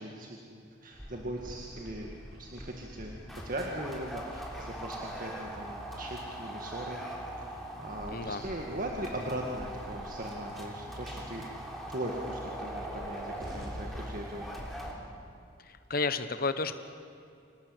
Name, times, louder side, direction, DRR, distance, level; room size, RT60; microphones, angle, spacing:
voice 1, 0.0-3.2 3.4-7.0 7.4-11.5 11.9-14.6, right 1 dB, 45° right, 0 dB, 2.0 m, -39 dB
sound 1, 0.9-14.9, right 1 dB, ahead, 3.6 m, -41 dB
voice 2, 8.1-8.4 15.9-16.8, left 3 dB, 50° left, 11 dB, 1.2 m, -31 dB
26.5 x 19.0 x 8.1 m, 2.5 s
head